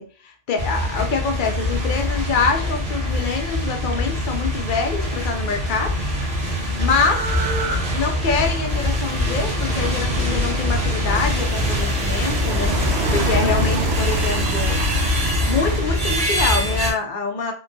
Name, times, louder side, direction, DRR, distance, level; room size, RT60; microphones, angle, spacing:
voice 1, 0.0-5.9 6.5-7.5 7.9-14.8 15.2-17.5, left 4 dB, 60° left, 4 dB, 0.6 m, -25 dB
sound 1, 0.6-16.9, left 1 dB, 45° right, 1.3 m, -23 dB
sound 2, 5.4-15.8, right 1 dB, 70° right, 0.8 m, -28 dB
3.8 x 2.2 x 2.5 m, 0.41 s
omnidirectional pair, 1.3 m